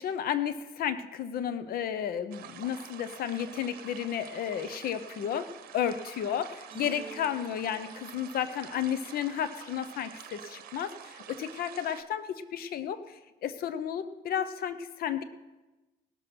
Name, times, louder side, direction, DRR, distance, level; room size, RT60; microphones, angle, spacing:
voice 1, 0.0-15.2, left 9 dB, 60° left, 13 dB, 0.8 m, -33 dB
sound 1, 2.3-12.0, right 9 dB, 60° right, 1.0 m, -48 dB
sound 2, 6.7-8.3, right 5 dB, 30° right, 1.0 m, -47 dB
18.0 x 6.8 x 5.9 m, 1.1 s
cardioid pair, 110°, 17 cm